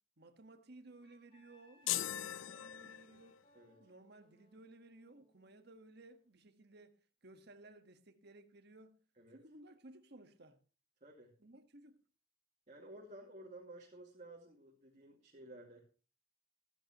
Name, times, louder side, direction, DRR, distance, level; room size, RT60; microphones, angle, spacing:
voice 1, 0.2-3.4 3.8-7.0 7.2-9.0 9.3-10.6 11.4-12.0, right 2 dB, 55° right, 1.5 m, -58 dB
Wind instrument woodwind instrument, 1.0-6.4, left 1 dB, 30° left, 3.4 m, -70 dB
sound 1, 1.9-3.4, left 13 dB, 75° left, 0.5 m, -39 dB
voice 2, 3.5-3.9 9.2-9.4 11.0-11.3 12.7-15.8, right 1 dB, 35° right, 2.3 m, -54 dB
14.5 x 13.5 x 3.0 m
head